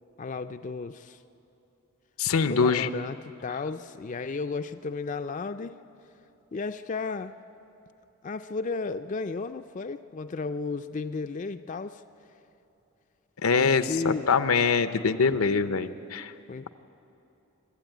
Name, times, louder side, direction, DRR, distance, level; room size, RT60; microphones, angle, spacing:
voice 1, 0.2-1.2 2.4-5.8 6.5-7.3 8.2-12.0 13.5-14.4 16.5-16.7, left 4 dB, 35° left, 9 dB, 0.4 m, -34 dB
voice 2, 2.2-2.9 13.4-16.3, left 5 dB, 85° left, 12 dB, 0.7 m, -24 dB
25.5 x 12.5 x 9.1 m, 2.9 s
head